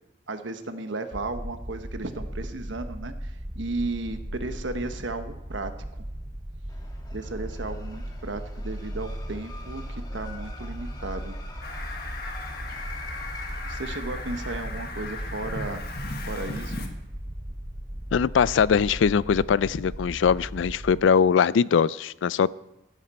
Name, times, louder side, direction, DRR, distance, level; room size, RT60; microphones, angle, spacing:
voice 1, 0.3-6.0 7.1-11.3 13.7-15.8 16.3-16.9, right 2 dB, 80° right, 8 dB, 1.2 m, -34 dB
sound 1, 1.1-21.0, equal, 20° right, 0.9 m, -37 dB
sound 2, 6.7-16.6, left 3 dB, 20° left, 1.6 m, -47 dB
Fowl, 11.6-16.9, left 2 dB, 55° left, 1.5 m, -37 dB
voice 2, 18.1-22.5, left 6 dB, 85° left, 20 dB, 0.4 m, -21 dB
14.5 x 11.5 x 4.3 m, 0.89 s
head